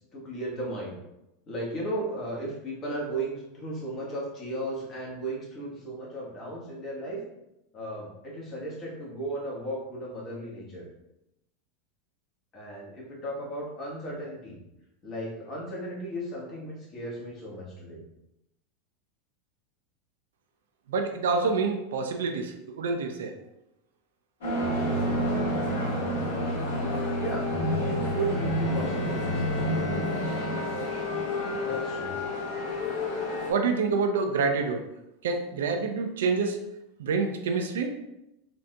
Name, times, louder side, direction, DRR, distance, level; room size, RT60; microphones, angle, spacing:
voice 1, 0.1-1.0 1.5-7.2 7.7-10.9 12.5-14.6 15.0-18.0 27.1-27.5 27.8-29.4 31.6-32.2, right 1 dB, 40° left, -3 dB, 1.3 m, -35 dB
voice 2, 20.9-23.3 33.5-34.8 35.2-36.6 37.0-37.9, right 4 dB, 75° right, 5 dB, 0.4 m, -27 dB
sound 1, 24.4-33.5, left 1 dB, 70° left, 1.4 m, -29 dB
Bowed string instrument, 28.2-32.1, left 2 dB, ahead, 1.0 m, -39 dB
3.9 x 2.5 x 2.2 m, 0.89 s
hypercardioid pair, 90°, 0 cm